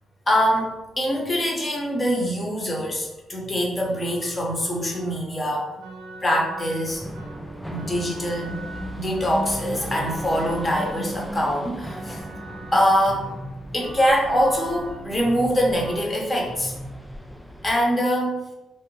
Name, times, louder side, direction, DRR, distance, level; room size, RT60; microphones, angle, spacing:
voice 1, 0.3-5.7 6.2-7.0 7.7-8.7 8.9-12.2 12.7-13.3 13.7-16.7 17.6-18.4, equal, 30° left, -2 dB, 0.9 m, -23 dB
sound 1, 3.4-16.0, right 3 dB, 75° right, 0.4 m, -42 dB
sound 2, 6.9-17.8, equal, ahead, 0.3 m, -37 dB
2.6 x 2.0 x 3.1 m, 0.99 s
supercardioid pair, 65°, 0 cm